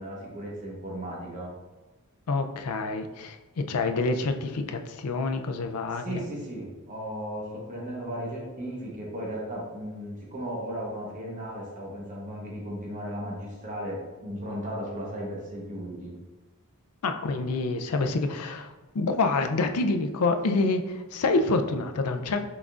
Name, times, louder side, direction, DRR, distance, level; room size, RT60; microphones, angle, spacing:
voice 1, 0.0-1.5 6.0-16.2, equal, 35° right, -3 dB, 1.0 m, -36 dB
voice 2, 2.3-6.3 17.0-22.4, left 3 dB, 80° left, 7 dB, 0.4 m, -27 dB
5.8 x 3.7 x 2.4 m, 1.2 s
head